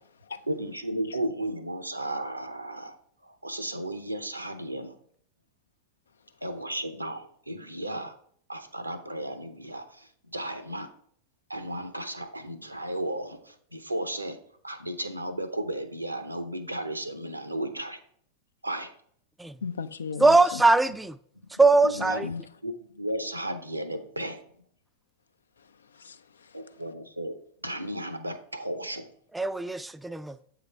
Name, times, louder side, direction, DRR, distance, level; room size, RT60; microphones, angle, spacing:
voice 1, 0.5-3.0 3.2-4.9 6.4-8.1 8.5-10.9 11.5-14.4 14.6-18.0 18.6-18.9 21.4-22.3 22.6-24.4 26.5-29.1, right 1 dB, 85° right, 0.6 m, -34 dB
voice 2, 19.6-20.6 22.2-22.5 25.6-26.8, left 6 dB, 70° left, 0.4 m, -37 dB
voice 3, 20.2-21.2 21.6-22.3 29.3-30.4, right 3 dB, 5° right, 0.3 m, -21 dB
7.8 x 3.9 x 4.6 m
figure-of-eight pair, 90°, 0 cm